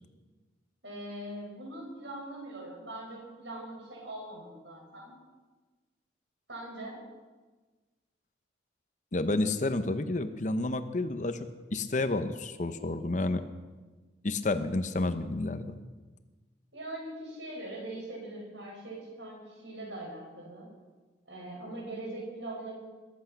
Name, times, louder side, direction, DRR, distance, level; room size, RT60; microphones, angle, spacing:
voice 1, 0.8-5.1 6.5-7.0 16.7-20.7 21.3-22.7, right 1 dB, 75° right, -2 dB, 6.4 m, -41 dB
voice 2, 9.1-13.5 14.2-15.8, left 2 dB, 40° left, 10 dB, 0.7 m, -30 dB
21.0 x 8.3 x 5.8 m, 1.3 s
head